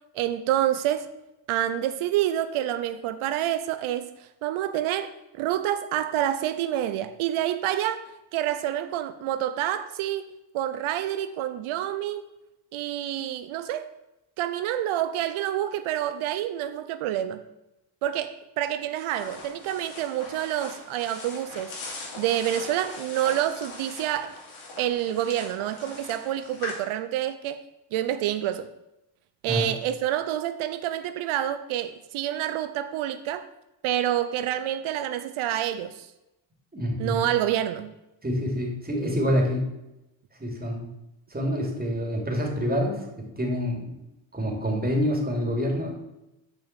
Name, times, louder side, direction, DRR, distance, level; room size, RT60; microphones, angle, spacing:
voice 1, 0.1-1.1 1.5-8.0 8.3-10.3 10.5-12.2 12.7-13.9 14.4-17.4 18.0-21.7 22.2-24.3 24.8-27.6 27.9-28.7 29.4-33.5 33.8-36.1 37.0-37.9, right 12 dB, 90° right, 0.6 m, -28 dB
sound 1, 19.1-26.8, left 3 dB, 85° left, 3.2 m, -41 dB
voice 2, 36.7-37.3 38.2-39.6 40.4-40.9 41.3-44.0 44.3-45.9, equal, 20° right, 2.9 m, -27 dB
7.6 x 5.1 x 7.3 m
cardioid pair, 75°, 47 cm